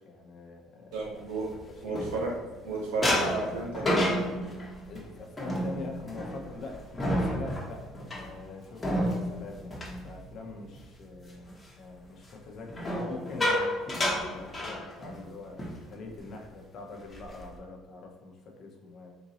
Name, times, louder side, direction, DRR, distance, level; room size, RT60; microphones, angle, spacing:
voice 1, 0.0-1.0 1.7-2.1 4.9-19.1, left 3 dB, 50° left, 1 dB, 0.8 m, -44 dB
voice 2, 0.9-1.5 1.8-2.3 2.6-4.0, right 3 dB, 90° right, -2 dB, 1.3 m, -32 dB
sound 1, 1.1-2.6 3.0-10.8 11.2-11.5 12.7-15.3 15.6-15.8 16.1-16.4 16.9-17.5, equal, 20° left, 1.2 m, -31 dB
3.9 x 2.6 x 4.1 m, 1.2 s
cardioid pair, 105°, 0 cm